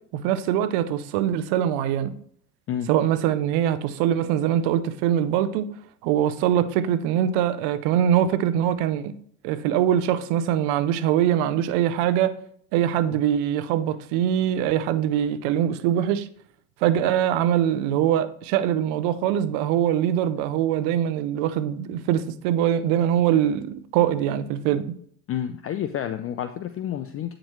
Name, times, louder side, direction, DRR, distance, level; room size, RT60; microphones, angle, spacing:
voice 1, 0.1-2.1 2.9-5.7 6.0-9.1 9.4-12.4 12.7-16.3 16.8-25.0, right 10 dB, 70° right, 0.8 m, -23 dB
voice 2, 25.3-27.4, left 10 dB, 35° left, 0.5 m, -29 dB
8.7 x 5.1 x 3.1 m
supercardioid pair, 90°, 42 cm